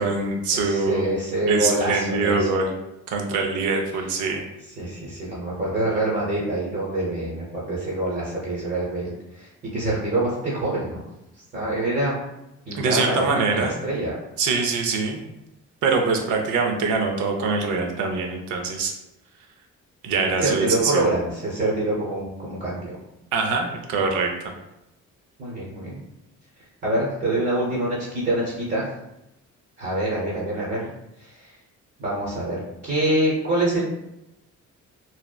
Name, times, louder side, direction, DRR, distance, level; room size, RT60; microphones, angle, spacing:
voice 1, 0.0-1.1 1.5-2.7 3.1-4.4 12.7-13.7 14.4-15.2 15.8-18.9 20.0-21.0 23.3-24.3, right 4 dB, 85° right, 2 dB, 0.5 m, -23 dB
voice 2, 0.5-2.5 4.8-11.0 11.5-12.2 12.7-14.2 20.4-23.0 25.4-26.0 26.8-28.9 29.8-30.9 31.2-31.5 32.0-33.8, right 1 dB, 35° right, -6 dB, 0.8 m, -25 dB
2.7 x 2.0 x 2.2 m, 0.90 s
cardioid pair, 90°, 30 cm